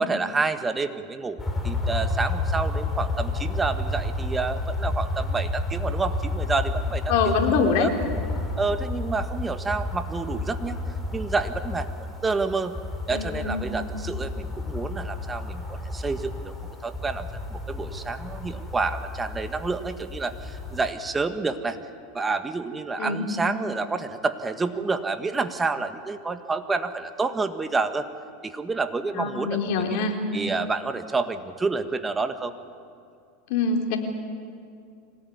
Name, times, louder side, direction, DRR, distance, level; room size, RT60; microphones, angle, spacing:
voice 1, 0.0-7.9 8.6-10.8 11.1-11.9 12.2-12.8 13.1-16.5 16.8-21.8 22.1-28.1 28.4-30.0 30.3-32.5, right 4 dB, 15° right, 9 dB, 1.6 m, -29 dB
sound 1, 1.4-20.9, left 2 dB, 10° left, 4.3 m, -31 dB
voice 2, 7.1-7.9 13.1-13.6 23.0-23.3 29.1-30.2 33.5-34.0, left 5 dB, 65° left, 2 dB, 3.9 m, -24 dB
25.5 x 18.5 x 9.6 m, 2.4 s
supercardioid pair, 115°, 0 cm